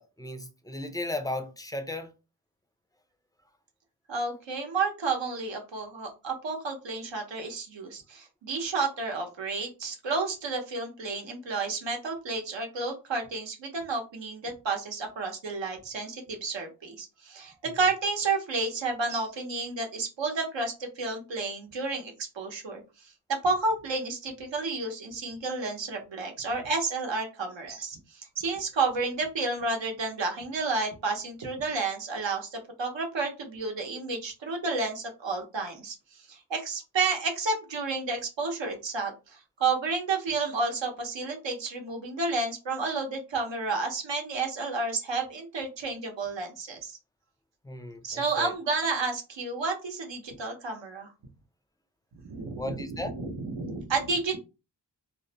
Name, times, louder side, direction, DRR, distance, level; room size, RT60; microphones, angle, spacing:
voice 1, 0.0-2.1 17.7-17.8 47.6-48.5 52.6-53.1, left 2 dB, 10° left, 0.4 m, -35 dB
voice 2, 4.1-23.1 23.4-47.0 48.0-51.1 52.2-54.4, right 3 dB, 80° right, 0.8 m, -31 dB
2.5 x 2.0 x 2.7 m
wide cardioid pair, 65°, 44 cm